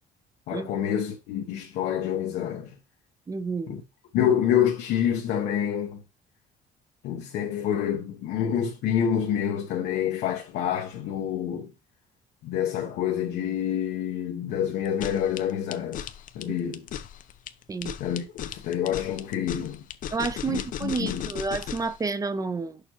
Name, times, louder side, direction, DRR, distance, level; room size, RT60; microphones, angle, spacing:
voice 1, 0.5-2.7 3.7-3.8 4.1-6.0 7.0-11.7 12.4-16.1 16.3-16.9 18.0-19.8 20.5-21.3, left 9 dB, 85° left, 0.9 m, -27 dB
voice 2, 3.3-3.8 16.5-16.6 17.7-17.9 20.1-22.8, right 4 dB, 20° right, 0.5 m, -30 dB
sound 1, 14.8-22.0, left 9 dB, 50° left, 0.5 m, -36 dB
6.6 x 5.2 x 2.9 m
cardioid pair, 110°, 17 cm